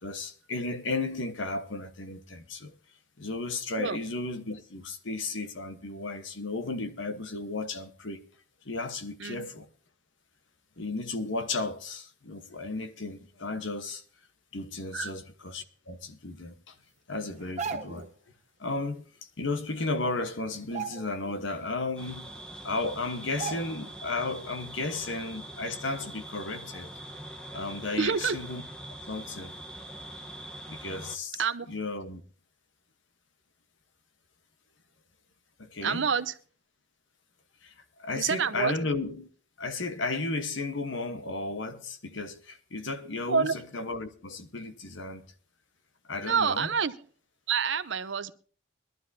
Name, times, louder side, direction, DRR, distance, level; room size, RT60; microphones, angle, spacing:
voice 1, 0.0-2.8 3.2-8.3 8.6-9.7 10.8-14.0 14.5-16.7 17.1-18.1 18.6-19.0 19.4-22.3 22.6-26.9 27.5-28.6 29.1-29.5 30.7-32.2 35.6-36.1 37.6-37.7 38.0-39.3 39.6-45.2 46.1-46.7, left 3 dB, 70° left, 1.2 m, -34 dB
sound 1, 17.4-18.1 19.6-19.7 20.0-20.2 20.6-21.5 21.8-21.9 22.7-22.8 23.4-24.0 24.4-24.5, right 6 dB, 35° right, 1.0 m, -37 dB
sound 2, 22.0-31.2, right 1 dB, 5° left, 1.0 m, -43 dB
voice 2, 28.0-28.4 31.4-31.7 35.8-36.3 38.2-38.7 43.3-43.5 46.2-46.9 47.5-48.3, right 6 dB, 65° right, 0.7 m, -27 dB
22.0 x 12.0 x 2.7 m
head